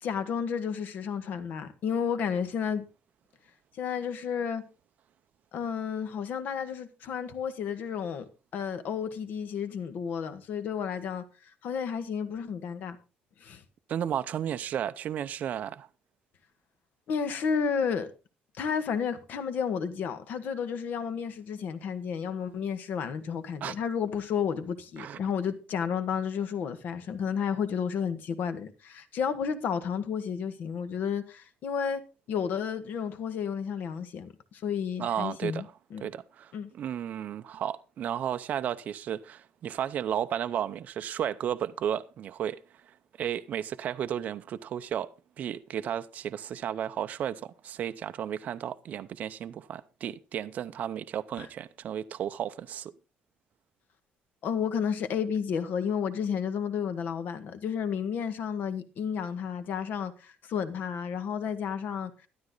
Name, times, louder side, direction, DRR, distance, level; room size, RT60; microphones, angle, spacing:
voice 1, 0.0-2.8 3.7-4.6 5.5-8.2 8.5-11.2 11.6-13.0 13.4-13.6 17.1-18.1 18.6-32.0 32.3-35.6 35.9-36.1 36.5-36.7 51.4-51.5 54.4-62.1, left 7 dB, 55° left, 1.6 m, -32 dB
voice 2, 13.9-15.9 23.6-23.8 25.0-25.2 35.0-35.7 36.0-42.6 43.2-45.1 45.4-52.9, right 9 dB, 45° right, 0.6 m, -33 dB
13.0 x 11.5 x 3.9 m
cardioid pair, 165°, 4 cm